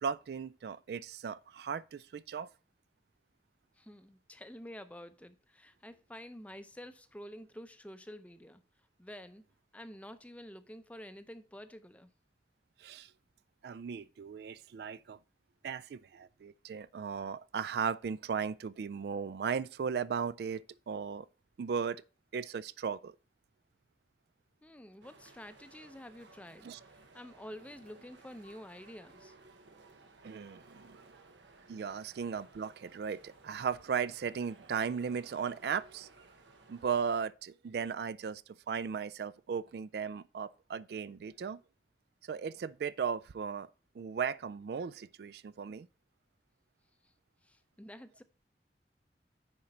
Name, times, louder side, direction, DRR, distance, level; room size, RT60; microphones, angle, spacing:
voice 1, 0.0-2.5 12.8-13.1 13.6-15.2 15.6-21.3 21.6-22.0 22.3-23.2 26.6-26.8 30.2-31.0 31.7-36.1 36.7-38.4 38.7-41.6 42.2-43.7 44.0-45.9, right 6 dB, 60° right, 0.3 m, -36 dB
voice 2, 3.8-8.6 9.0-9.4 9.7-12.1 24.6-29.3 47.0-47.1 47.4-48.2, equal, 10° left, 0.5 m, -49 dB
sound 1, 25.0-37.3, right 3 dB, 90° right, 1.1 m, -59 dB
9.7 x 4.4 x 4.9 m
head